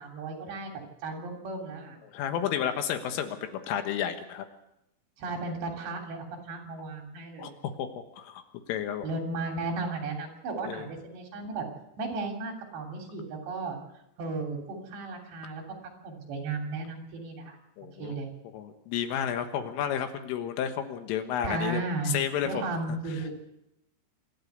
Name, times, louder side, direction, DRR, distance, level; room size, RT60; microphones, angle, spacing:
voice 1, 0.0-2.0 5.2-7.5 9.0-11.7 12.0-13.8 14.2-15.6 16.0-17.6 18.0-18.3 21.4-22.1 22.4-23.3, right 3 dB, 60° right, 2 dB, 5.1 m, -35 dB
voice 2, 2.1-4.5 7.4-7.9 8.2-8.4 8.7-9.1 10.7-10.9 17.8-18.2 18.5-21.8 22.1-22.6, left 9 dB, 75° left, 7 dB, 3.8 m, -31 dB
26.0 x 12.5 x 8.1 m, 0.86 s
omnidirectional pair, 6.0 m